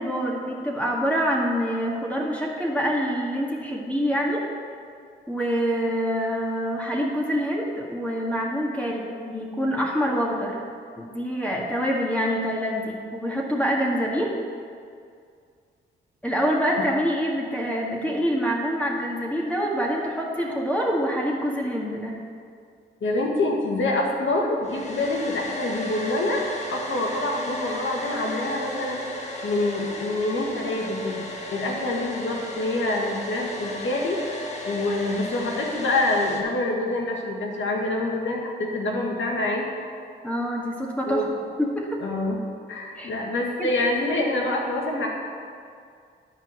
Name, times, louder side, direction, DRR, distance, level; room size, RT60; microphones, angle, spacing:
voice 1, 0.0-4.4 5.3-10.6 11.0-14.3 16.2-22.1 40.2-41.2 41.6-41.9 43.0-43.1 43.6-43.7, equal, 5° left, -2 dB, 1.9 m, -26 dB
voice 2, 23.0-26.4 26.7-29.0 29.4-31.2 31.5-34.4 34.7-39.7 41.1-41.3 42.0-42.4 42.7-45.1, left 2 dB, 65° left, 0 dB, 1.9 m, -26 dB
Domestic sounds home sounds, 24.6-36.4, left 1 dB, 35° left, 1.9 m, -34 dB
11.0 x 4.5 x 7.8 m, 2.2 s
supercardioid pair, 50°, 21 cm